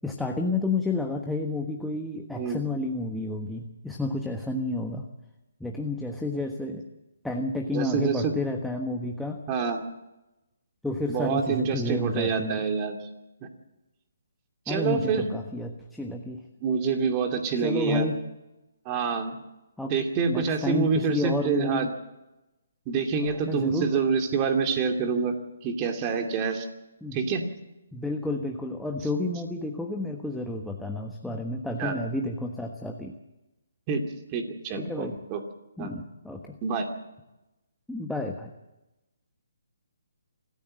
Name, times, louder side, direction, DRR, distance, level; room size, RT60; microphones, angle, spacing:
voice 1, 0.0-5.1 5.6-6.8 7.2-9.4 10.8-12.6 14.7-16.4 17.6-18.2 19.8-20.0 20.2-21.9 23.5-24.0 27.0-27.2 27.9-33.1 34.8-35.2 35.8-36.6 37.9-38.5, left 2 dB, ahead, 1 dB, 1.3 m, -30 dB
voice 2, 7.7-8.3 9.5-9.8 11.1-13.0 13.4-13.5 14.7-15.2 16.6-18.1 18.9-19.4 19.9-21.9 22.9-25.4 25.6-26.7 27.1-27.4 31.8-32.0 33.9-34.0 34.3-35.4 35.8-35.9 36.6-36.9, right 5 dB, 25° right, 5 dB, 2.6 m, -26 dB
25.5 x 14.0 x 7.7 m, 1.0 s
hypercardioid pair, 150°, 0 cm